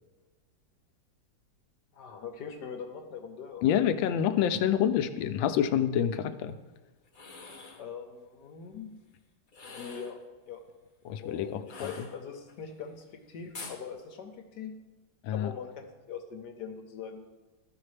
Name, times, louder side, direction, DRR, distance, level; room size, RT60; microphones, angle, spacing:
voice 1, 1.9-3.9 7.8-9.0 9.6-10.6 11.2-14.7 15.3-17.3, left 6 dB, 65° left, 4 dB, 1.4 m, -42 dB
voice 2, 3.6-6.5 11.0-12.1 15.2-15.5, left 9 dB, 85° left, 10 dB, 1.3 m, -27 dB
sound 1, 7.0-7.9 9.5-10.2 11.6-12.5 13.5-13.8, left 3 dB, 45° left, 0.6 m, -45 dB
13.5 x 5.6 x 3.3 m, 1.2 s
omnidirectional pair, 2.0 m